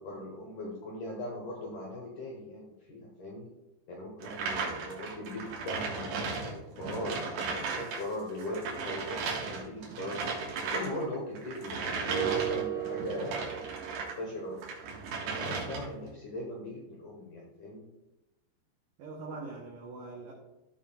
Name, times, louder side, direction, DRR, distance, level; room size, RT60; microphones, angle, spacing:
voice 1, 0.0-3.5 3.9-10.4 10.7-13.5 14.0-14.6 15.3-17.9, left 1 dB, 75° left, -1 dB, 1.9 m, -39 dB
sound 1, 4.2-8.0 8.3-14.2 14.6-16.0, right 4 dB, 70° right, 3.3 m, -36 dB
sound 2, 12.1-14.4, right 10 dB, 40° right, 3.0 m, -35 dB
voice 2, 19.0-20.3, right 3 dB, 90° right, 0 dB, 1.9 m, -43 dB
15.5 x 5.7 x 2.3 m, 0.96 s
omnidirectional pair, 5.2 m